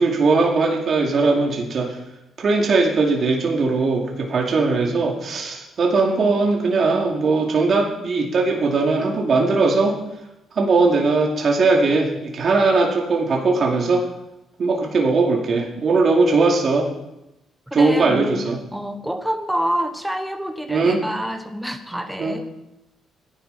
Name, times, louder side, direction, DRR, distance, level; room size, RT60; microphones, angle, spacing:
voice 1, 0.0-2.0 2.4-10.0 10.5-14.0 14.6-16.9 17.7-18.6 20.7-21.0 22.2-22.4, right 3 dB, 50° right, -1 dB, 2.5 m, -19 dB
voice 2, 17.7-18.4 18.7-22.5, equal, 5° right, 6 dB, 1.1 m, -27 dB
15.5 x 11.0 x 4.2 m, 0.90 s
cardioid pair, 90°, 0 cm